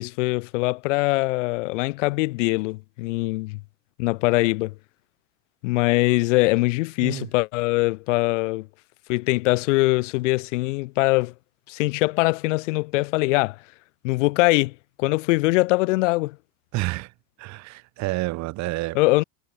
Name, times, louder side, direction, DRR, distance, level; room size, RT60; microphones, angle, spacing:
voice 1, 0.0-3.6 4.0-4.7 5.6-8.7 9.1-11.3 11.7-13.6 14.0-16.4 18.9-19.2, left 22 dB, 70° left, 1.6 m, -22 dB
voice 2, 16.7-17.1 17.4-19.0, right 21 dB, 45° right, 2.5 m, -29 dB
supercardioid pair, 140°, 38 cm